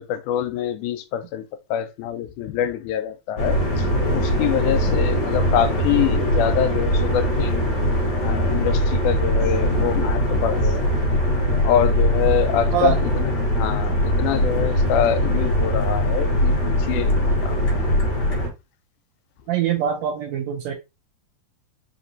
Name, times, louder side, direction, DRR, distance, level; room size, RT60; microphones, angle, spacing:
voice 1, 0.0-7.7 8.2-10.9 11.6-17.6, left 10 dB, 80° left, 2.0 m, -25 dB
sound 1, 3.4-18.5, equal, 65° left, 1.0 m, -21 dB
voice 2, 19.5-20.7, right 10 dB, 80° right, 1.7 m, -23 dB
4.8 x 2.9 x 2.6 m
omnidirectional pair, 3.6 m